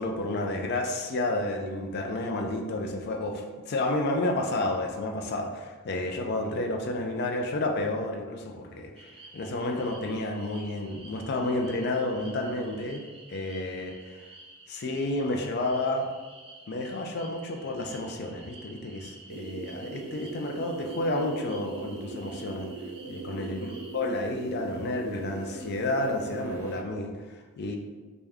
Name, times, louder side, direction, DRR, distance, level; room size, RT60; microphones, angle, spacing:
voice 1, 0.0-9.1 9.3-13.0 13.3-14.3 14.7-16.1 16.7-22.7 23.1-23.7 23.9-27.8, left 2 dB, 50° left, 3 dB, 0.4 m, -31 dB
sound 1, 9.0-24.0, right 2 dB, 25° right, 0.6 m, -51 dB
sound 2, 19.3-26.8, right 4 dB, 85° right, 0.4 m, -40 dB
3.4 x 2.6 x 3.4 m, 1.3 s
head